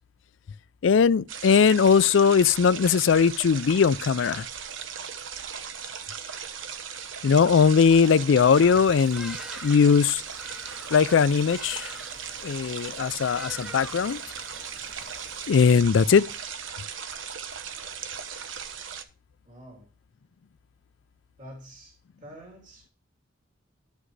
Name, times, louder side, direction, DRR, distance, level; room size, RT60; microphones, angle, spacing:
voice 1, 0.8-4.5 7.2-9.4 9.6-10.2 10.9-11.9 12.4-14.2 15.5-16.2, left 6 dB, 70° left, 0.4 m, -20 dB
sound 1, 1.3-19.0, right 7 dB, 75° right, 1.0 m, -38 dB
Bird vocalization bird call bird song, 8.6-15.8, equal, 5° right, 0.8 m, -45 dB
voice 2, 19.4-19.9 21.4-22.9, equal, 40° right, 2.8 m, -47 dB
13.5 x 6.2 x 3.2 m
head